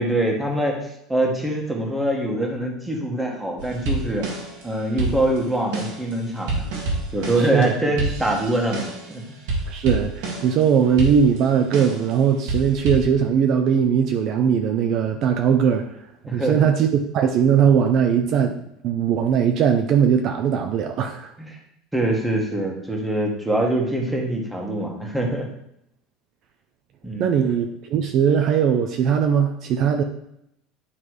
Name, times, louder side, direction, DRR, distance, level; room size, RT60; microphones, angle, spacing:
voice 1, 0.0-4.3 4.6-6.7 7.1-9.2 16.2-16.7 21.4-21.6 21.9-25.5 27.0-27.3, right 1 dB, 5° right, 0 dB, 1.5 m, -24 dB
sound 1, 3.6-4.6 5.0-9.1 9.5-10.6 11.0-12.1 12.5-13.1, right 2 dB, 80° right, 1.9 m, -28 dB
voice 2, 7.4-7.7 9.7-21.3 27.2-30.0, right 7 dB, 50° right, 5 dB, 0.6 m, -20 dB
9.8 x 3.3 x 4.7 m, 0.77 s
supercardioid pair, 135°, 0 cm